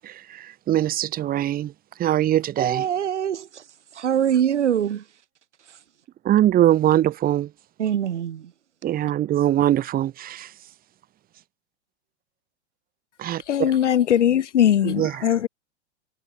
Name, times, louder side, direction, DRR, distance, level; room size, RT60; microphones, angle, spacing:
voice 1, 0.0-1.7 2.0-2.8 6.2-7.5 8.8-10.5 13.2-13.7 14.8-15.2, right 12 dB, 25° right, 1.6 m, -22 dB
voice 2, 2.6-3.6 4.0-5.0 7.8-8.5, right 9 dB, 80° right, 5.4 m, -23 dB
voice 3, 13.5-15.5, left 10 dB, 80° left, 1.2 m, -20 dB
hypercardioid pair, 120°, 35 cm